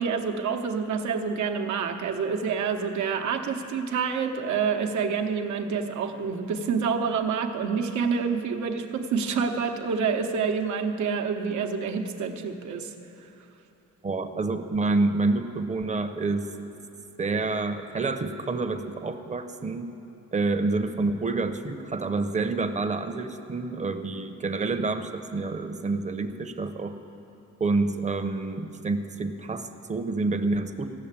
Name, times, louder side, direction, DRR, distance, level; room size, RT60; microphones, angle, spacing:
voice 1, 0.0-12.9, right 6 dB, 70° right, 5 dB, 1.0 m, -27 dB
voice 2, 14.0-16.5 17.2-19.9 20.3-26.9 27.6-30.9, right 3 dB, 25° right, 9 dB, 0.8 m, -28 dB
14.5 x 6.6 x 8.9 m, 2.9 s
cardioid pair, 90°, 30 cm